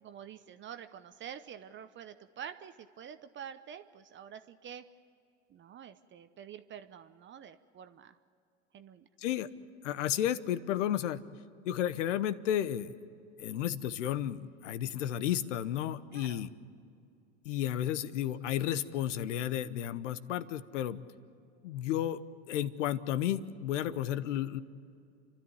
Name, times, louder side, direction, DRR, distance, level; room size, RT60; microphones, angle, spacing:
voice 1, 0.0-4.8 5.5-8.2 8.7-9.1 16.1-16.5, right 8 dB, 30° right, 10 dB, 0.8 m, -47 dB
voice 2, 9.2-9.5 9.8-11.2 11.6-12.9 13.4-16.5 17.4-21.0 21.6-22.2 22.5-24.6, left 11 dB, 75° left, 15 dB, 1.0 m, -32 dB
30.0 x 13.0 x 9.6 m, 2.5 s
hypercardioid pair, 95°, 37 cm